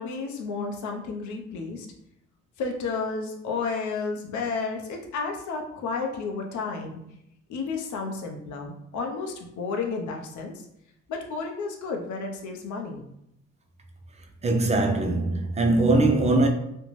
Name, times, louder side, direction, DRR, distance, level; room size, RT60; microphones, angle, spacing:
voice 1, 0.0-1.9 2.6-7.0 7.5-10.5 11.1-13.0, left 4 dB, 75° left, 0.6 m, -32 dB
voice 2, 14.4-16.5, right 2 dB, 25° right, 0.4 m, -21 dB
2.6 x 2.1 x 3.0 m
cardioid pair, 90°, 30 cm